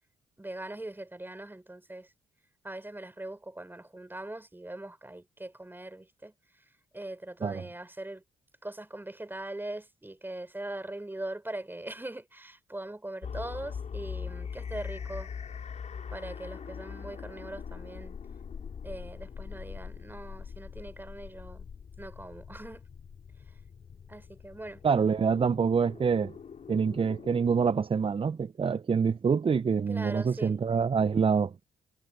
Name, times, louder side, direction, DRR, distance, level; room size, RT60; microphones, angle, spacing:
voice 1, 0.4-2.1 2.6-6.3 6.9-8.2 8.6-15.3 16.1-18.2 18.8-21.7 22.0-22.8 24.1-24.8 29.9-30.5, right 1 dB, 15° right, 4.5 m, -41 dB
sound 1, 13.2-27.8, left 6 dB, 50° left, 5.5 m, -42 dB
voice 2, 24.8-26.3 26.7-31.5, right 6 dB, 40° right, 0.9 m, -26 dB
hypercardioid pair, 45°, 15 cm